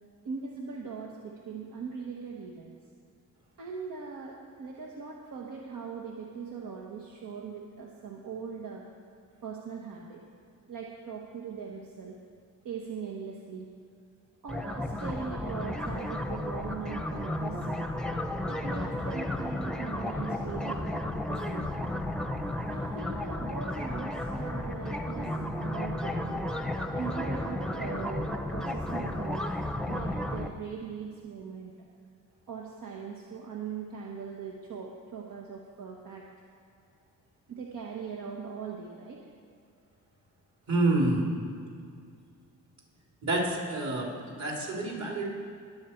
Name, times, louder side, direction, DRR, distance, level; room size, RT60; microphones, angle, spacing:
voice 1, 0.2-2.8 3.6-8.8 9.4-10.2 10.7-12.2 12.6-13.7 14.4-18.1 18.5-21.0 21.3-21.8 22.7-26.4 26.9-31.7 32.5-36.2 37.5-39.2, right 5 dB, 70° right, -1 dB, 1.3 m, -40 dB
sound 1, 14.5-30.5, left 1 dB, ahead, 0.8 m, -33 dB
voice 2, 40.7-41.3 43.2-44.1 44.4-45.3, right 2 dB, 55° right, -2 dB, 3.3 m, -27 dB
21.0 x 7.6 x 4.5 m, 2.3 s
cardioid pair, 90°, 34 cm